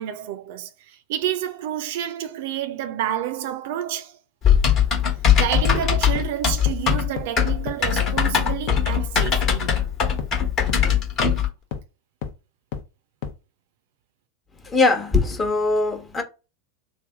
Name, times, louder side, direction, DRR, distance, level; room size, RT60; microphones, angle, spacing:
voice 1, 0.0-4.2 5.3-9.7, right 11 dB, 60° right, 0.4 m, -29 dB
Typing, 4.4-11.5, left 8 dB, 40° left, 1.2 m, -20 dB
sound 1, 5.6-5.7 6.1-6.2 6.7-6.8 7.2-7.3 7.7-7.8 8.2-8.3 8.7-8.8 9.2-9.3 9.7-9.8 10.2-10.3 10.7-10.8 11.2-11.3 11.7-11.8 12.2-12.3 12.7-12.8 13.2-13.3, left 7 dB, 55° left, 0.7 m, -30 dB
voice 2, 14.6-16.2, left 3 dB, 20° left, 0.9 m, -21 dB
3.3 x 2.1 x 3.5 m
figure-of-eight pair, 85°, 0 cm